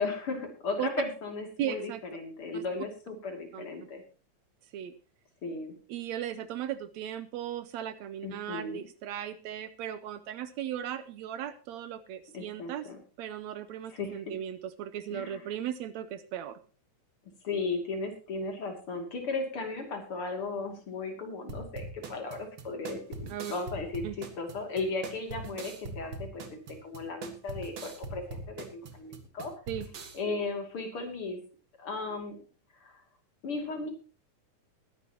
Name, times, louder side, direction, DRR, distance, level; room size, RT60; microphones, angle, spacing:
voice 1, 0.0-4.0 5.4-5.7 8.2-8.8 12.3-13.0 13.9-14.2 15.1-15.4 17.4-26.4 26.8-29.5 30.1-31.4 31.8-32.4 32.8-33.0 33.4-33.9, left 3 dB, 45° left, 4 dB, 3.3 m, -36 dB
voice 2, 1.6-2.0 2.5-2.6 3.5-3.7 4.7-4.9 5.9-12.9 13.2-16.6 23.3-23.5 24.0-24.2 29.7-29.9, right 10 dB, 75° right, 13 dB, 1.9 m, -37 dB
sound 1, 21.5-30.2, right 3 dB, 45° right, 2.0 m, -42 dB
20.5 x 10.5 x 2.9 m, 0.36 s
omnidirectional pair, 3.4 m